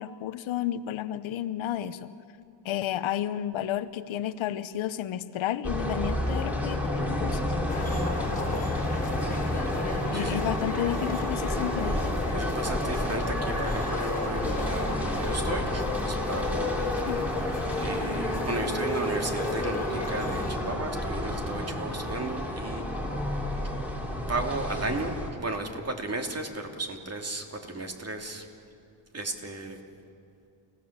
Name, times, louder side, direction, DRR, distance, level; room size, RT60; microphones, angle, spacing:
voice 1, 0.0-2.1 2.6-7.5 10.1-12.0 17.1-17.3, left 11 dB, 85° left, 13 dB, 1.0 m, -32 dB
sound 1, 5.6-25.3, left 1 dB, 5° right, 3.6 m, -30 dB
sound 2, 7.7-20.5, left 3 dB, 15° left, 3.2 m, -36 dB
voice 2, 10.1-10.4 12.3-16.8 17.8-22.8 24.3-25.1 25.4-28.4 29.1-29.8, right 2 dB, 30° right, 3 dB, 2.8 m, -34 dB
30.0 x 18.0 x 7.4 m, 2.5 s
cardioid pair, 105°, 46 cm